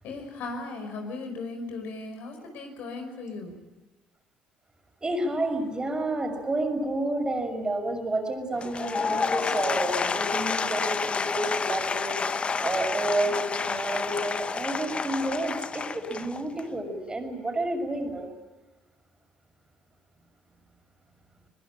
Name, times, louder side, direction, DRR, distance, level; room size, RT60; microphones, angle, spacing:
voice 1, 0.0-3.5, left 3 dB, 65° left, 4 dB, 5.2 m, -37 dB
voice 2, 5.0-18.3, right 1 dB, 25° right, 4 dB, 6.5 m, -30 dB
Applause / Crowd, 8.5-16.7, left 5 dB, 35° left, 1.1 m, -29 dB
22.5 x 21.0 x 8.9 m, 1.2 s
hypercardioid pair, 55°, 3 cm